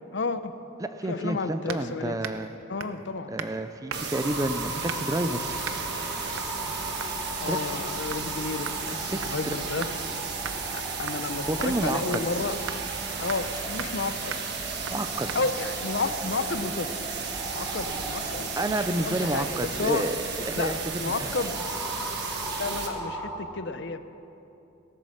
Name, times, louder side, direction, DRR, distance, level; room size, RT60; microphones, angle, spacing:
voice 1, 0.1-0.5 1.1-2.2 2.7-3.3 7.4-9.9 10.7-12.6 13.2-14.3 15.3-17.1 17.5-20.0 20.6-21.6 22.6-24.0, left 3 dB, 55° left, 10 dB, 0.6 m, -31 dB
voice 2, 0.8-2.5 3.3-5.6 7.5-7.8 9.1-9.5 11.5-12.2 14.9-15.3 18.6-21.5, right 1 dB, 15° right, 10 dB, 0.4 m, -30 dB
sound 1, 1.7-1.9 2.2-2.5 2.8-3.0 3.4-3.6 3.9-4.2 4.9-5.2 5.6-5.8 6.4-6.5 7.0-7.2 7.6-7.8 8.1-8.2 8.7-10.0 10.4-10.6 11.1-11.3 11.6-11.8 12.1-12.3 12.7-12.8 13.3-13.5 13.8-14.0 14.3-14.5 14.9-15.0 15.3-15.4, right 6 dB, 80° right, 0.6 m, -38 dB
sound 2, 3.9-22.9, right 5 dB, 50° right, 1.3 m, -34 dB
sound 3, 4.1-23.4, equal, 5° left, 2.2 m, -39 dB
18.0 x 8.5 x 6.4 m, 2.9 s
head